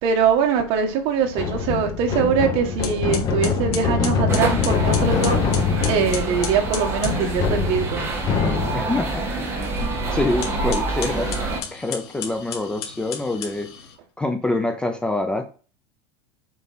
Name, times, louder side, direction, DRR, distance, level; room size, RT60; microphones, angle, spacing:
voice 1, 0.0-5.4 5.9-8.1 9.8-9.9, right 6 dB, 50° right, 1.6 m, -22 dB
sound 1, 1.3-9.1, left 6 dB, 30° left, 1.0 m, -24 dB
sound 2, 2.3-2.4 2.8-7.2 10.3-14.0, left 8 dB, 90° left, 2.3 m, -34 dB
Tottenham Hale - PC World, 4.3-11.6, right 3 dB, 20° right, 1.8 m, -27 dB
voice 2, 8.7-9.1 9.8-13.7 14.2-15.4, left 2 dB, 5° left, 0.5 m, -26 dB
7.0 x 4.8 x 4.2 m
supercardioid pair, 160°, 13 cm